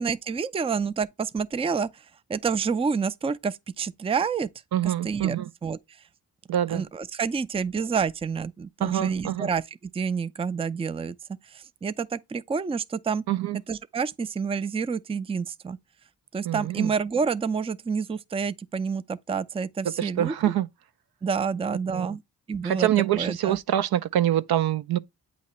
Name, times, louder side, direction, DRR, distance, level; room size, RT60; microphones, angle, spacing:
voice 1, 0.0-2.0 2.3-4.5 4.8-5.4 5.6-5.8 6.7-9.6 9.9-11.1 11.5-13.2 13.7-15.8 16.3-20.3 21.2-22.2 22.5-22.9 23.1-23.6, right 5 dB, 15° right, 0.4 m, -28 dB
voice 2, 4.7-5.5 6.5-6.8 8.8-9.5 13.3-13.6 16.4-16.9 19.8-20.7 21.9-22.2 22.6-25.0, right 12 dB, 70° right, 0.6 m, -25 dB
8.2 x 3.0 x 4.2 m
cardioid pair, 60°, 39 cm